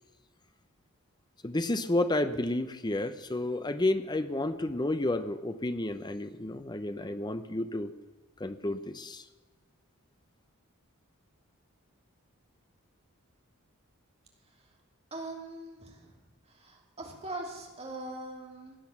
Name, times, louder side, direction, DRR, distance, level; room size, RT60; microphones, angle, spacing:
voice 1, 1.4-7.9 8.4-9.2, left 1 dB, 20° left, 11 dB, 0.7 m, -31 dB
voice 2, 15.1-16.1 16.6-18.8, right 2 dB, 30° right, 0 dB, 3.0 m, -41 dB
16.5 x 10.0 x 7.2 m, 1.2 s
head